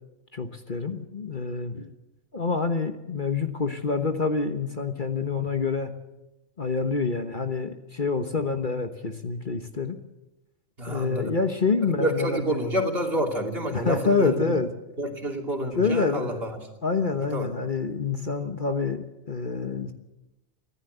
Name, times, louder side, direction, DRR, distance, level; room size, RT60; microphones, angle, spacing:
voice 1, 0.3-1.9 2.3-5.9 6.6-10.0 10.9-12.4 13.7-14.7 15.7-16.4 16.8-19.9, left 4 dB, 40° left, 6 dB, 1.4 m, -27 dB
voice 2, 10.8-11.3 11.8-14.6 15.0-16.6 17.2-17.5, right 1 dB, 45° right, 2 dB, 3.2 m, -28 dB
24.5 x 14.5 x 8.0 m, 0.99 s
omnidirectional pair, 1.4 m